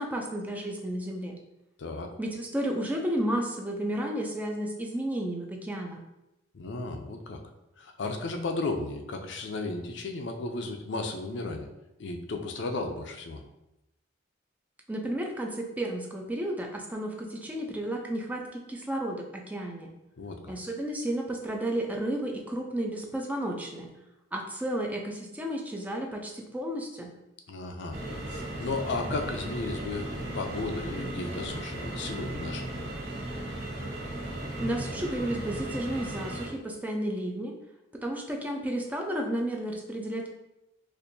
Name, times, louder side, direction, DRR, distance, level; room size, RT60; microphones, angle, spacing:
voice 1, 0.0-1.4 2.2-6.0 14.9-19.9 20.5-23.9 24.3-27.1 34.6-37.5 37.9-40.3, right 1 dB, 10° right, 1 dB, 0.4 m, -32 dB
voice 2, 1.8-2.1 6.5-7.4 7.8-11.7 12.0-13.4 20.2-20.5 27.5-28.0 28.3-32.8, left 3 dB, 60° left, 4 dB, 0.4 m, -34 dB
sound 1, 27.9-36.5, right 1 dB, 60° right, 1.3 m, -36 dB
4.3 x 2.5 x 2.6 m, 0.93 s
head